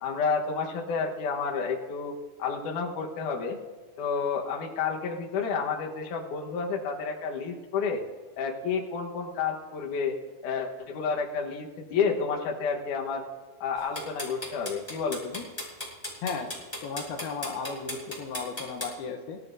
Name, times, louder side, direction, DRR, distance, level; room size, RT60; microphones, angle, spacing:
voice 1, 0.0-3.6 4.0-8.0 8.4-10.1 10.4-13.2 13.6-15.5, left 5 dB, 60° left, 0 dB, 2.6 m, -30 dB
sound 1, 13.8-18.9, left 1 dB, 5° left, 5.3 m, -35 dB
voice 2, 16.2-16.5 16.8-19.4, left 5 dB, 80° left, 4 dB, 2.9 m, -35 dB
25.0 x 14.5 x 2.7 m, 1.4 s
omnidirectional pair, 4.4 m